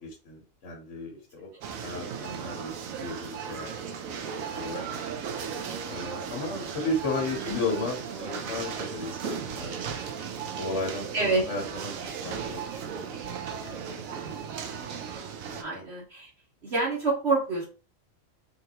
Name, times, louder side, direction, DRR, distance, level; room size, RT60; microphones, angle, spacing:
voice 1, 0.0-1.5 1.8-3.7 4.3-4.8 5.9-9.9 10.5-12.6 13.0-13.1 13.5-14.5 15.5-15.8, left 2 dB, 65° left, -1 dB, 1.3 m, -35 dB
sound 1, 1.6-15.6, right 7 dB, 85° right, 1.0 m, -36 dB
voice 2, 4.4-5.0 7.5-7.6 11.1-11.4 15.6-16.3 16.6-17.6, right 3 dB, 55° right, -5 dB, 1.3 m, -28 dB
3.7 x 2.6 x 2.8 m, 0.35 s
omnidirectional pair, 1.4 m